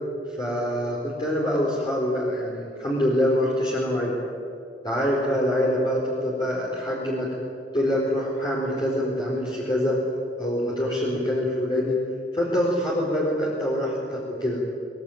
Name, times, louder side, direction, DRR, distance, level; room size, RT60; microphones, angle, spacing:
voice 1, 0.4-4.1 4.8-7.3 7.7-10.0 10.4-12.0 12.3-14.6, equal, 25° left, -5 dB, 4.5 m, -25 dB
23.0 x 21.5 x 9.3 m, 2.5 s
head